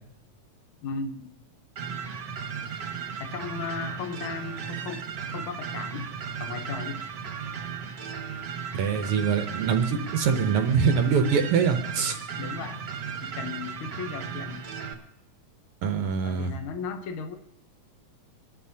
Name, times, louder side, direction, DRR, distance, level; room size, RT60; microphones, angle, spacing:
voice 1, 0.8-1.3 3.2-5.1 5.3-6.1 6.4-7.0 12.4-12.8 13.2-14.7 16.2-17.4, left 5 dB, 70° left, 6 dB, 1.2 m, -36 dB
sound 1, 1.7-14.9, right 7 dB, 55° right, 1.3 m, -36 dB
voice 2, 8.7-12.2 15.8-16.5, right 6 dB, 70° right, 5 dB, 1.4 m, -24 dB
27.0 x 11.0 x 2.8 m, 0.85 s
omnidirectional pair, 3.4 m